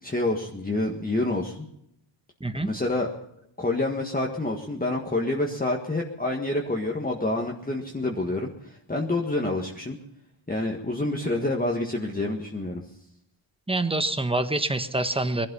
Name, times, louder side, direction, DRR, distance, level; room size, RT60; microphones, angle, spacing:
voice 1, 0.0-1.7 2.5-3.1 3.6-10.0 10.5-12.8, left 2 dB, 20° left, 0 dB, 1.7 m, -28 dB
voice 2, 2.4-2.7 13.7-15.5, right 2 dB, 10° right, 9 dB, 1.2 m, -26 dB
21.0 x 12.0 x 5.5 m, 0.79 s
wide cardioid pair, 100°, 48 cm